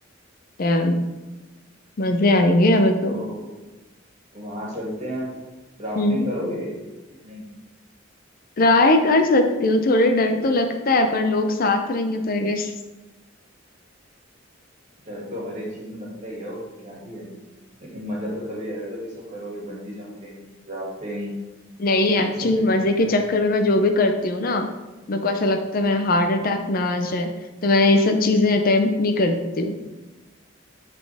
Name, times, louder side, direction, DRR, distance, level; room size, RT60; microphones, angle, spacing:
voice 1, 0.6-1.0 2.0-3.2 6.0-6.3 8.6-12.7 21.8-24.7 25.1-27.3 27.6-29.8, left 2 dB, 50° left, 6 dB, 0.5 m, -20 dB
voice 2, 3.1-3.5 4.3-5.3 5.8-6.7 7.1-7.5 15.1-17.3 17.8-21.4 22.2-22.7 23.0-23.1 26.1-26.4, equal, 35° right, -4 dB, 2.2 m, -33 dB
9.6 x 4.2 x 3.5 m, 1.1 s
head